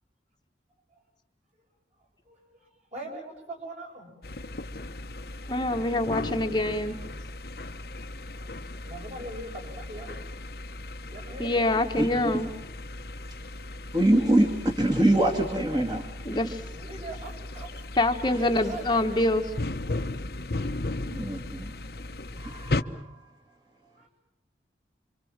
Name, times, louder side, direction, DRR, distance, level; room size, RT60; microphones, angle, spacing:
voice 1, 2.7-4.1 8.8-10.2 11.1-11.5 16.7-17.7 18.6-19.2 22.4-22.6 24.0-24.1, right 2 dB, 40° right, 7.7 m, -41 dB
sound 1, 4.2-22.8, left 2 dB, 55° left, 1.0 m, -36 dB
voice 2, 5.5-6.9 11.4-12.5 16.2-16.6 18.0-19.5, left 1 dB, 25° left, 1.3 m, -25 dB
voice 3, 13.9-16.1 16.4-16.5 18.3-18.7 21.1-21.7 22.4-23.3, right 1 dB, 25° right, 2.4 m, -25 dB
27.0 x 25.5 x 7.4 m
head